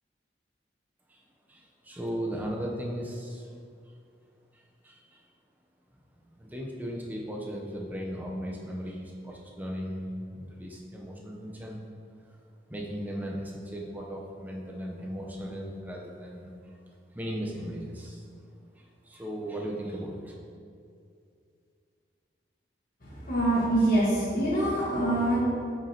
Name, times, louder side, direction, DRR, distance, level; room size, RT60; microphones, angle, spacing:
voice 1, 1.5-3.5 4.5-5.2 6.3-11.8 12.7-16.8 17.1-18.3 18.8-20.3, equal, 10° right, -2 dB, 0.7 m, -37 dB
voice 2, 23.0-25.4, right 1 dB, 50° left, -9 dB, 1.4 m, -25 dB
8.1 x 5.2 x 2.9 m, 2.4 s
head